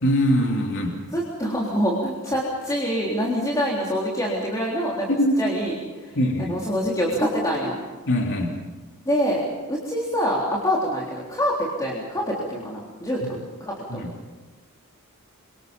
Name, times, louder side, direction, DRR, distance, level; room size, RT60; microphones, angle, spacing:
voice 1, 0.0-1.0 5.2-5.4 6.1-6.6 8.1-8.5 13.2-13.3 13.9-14.1, equal, 60° left, 1 dB, 3.2 m, -22 dB
voice 2, 1.1-5.1 5.4-6.1 6.5-7.8 9.1-9.4 9.7-14.0, equal, 15° left, -4 dB, 3.7 m, -25 dB
29.0 x 24.5 x 5.4 m, 1.3 s
head